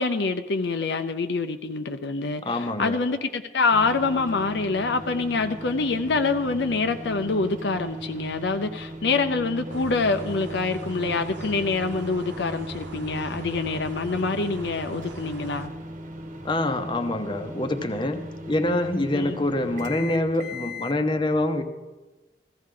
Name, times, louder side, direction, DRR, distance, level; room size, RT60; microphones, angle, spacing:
voice 1, 0.0-15.7 19.1-19.4, left 3 dB, 65° left, 8 dB, 0.6 m, -26 dB
voice 2, 2.4-3.0 16.4-21.6, left 1 dB, 25° left, 7 dB, 0.8 m, -25 dB
sound 1, 3.7-21.0, equal, 40° right, 1.3 m, -38 dB
sound 2, 9.7-15.7, right 2 dB, 70° right, 1.3 m, -42 dB
15.5 x 15.0 x 3.8 m, 1.2 s
head